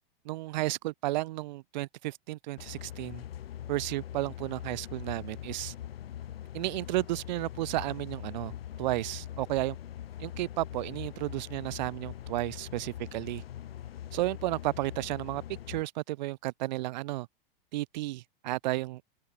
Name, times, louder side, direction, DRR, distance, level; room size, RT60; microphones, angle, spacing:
voice 1, 0.2-3.2 3.7-5.7 6.5-8.5 8.8-9.8 10.2-13.4 14.1-15.4 15.7-17.3 17.7-19.0, right 18 dB, 50° right, 1.2 m, -33 dB
sound 1, 2.6-15.8, left 11 dB, 80° left, 4.1 m, -42 dB
open air
supercardioid pair, 165°, 29 cm